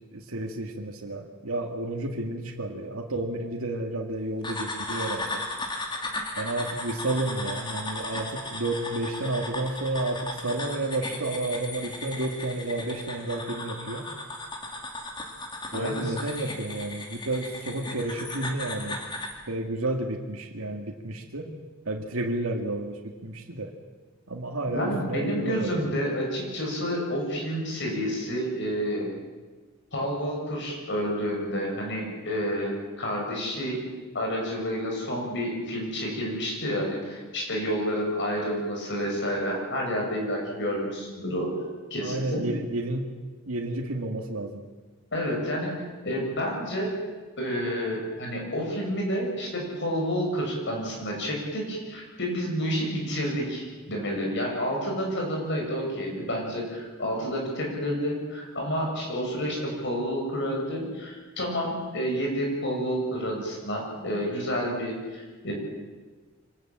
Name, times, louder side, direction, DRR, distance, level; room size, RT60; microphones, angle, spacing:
voice 1, 0.1-5.4 6.4-14.1 15.7-19.0 19.5-21.5 21.9-23.7 24.3-25.9 42.0-43.1 43.5-44.6, right 2 dB, 90° right, 1 dB, 2.1 m, -31 dB
sound 1, 4.4-19.4, left 2 dB, 20° left, 2.7 m, -36 dB
voice 2, 15.7-16.1 24.7-29.1 29.9-33.9 34.1-41.5 41.9-42.5 45.1-45.7 46.0-46.9 47.4-65.5, equal, 60° left, 0 dB, 7.5 m, -29 dB
25.0 x 18.0 x 7.5 m, 1.3 s
head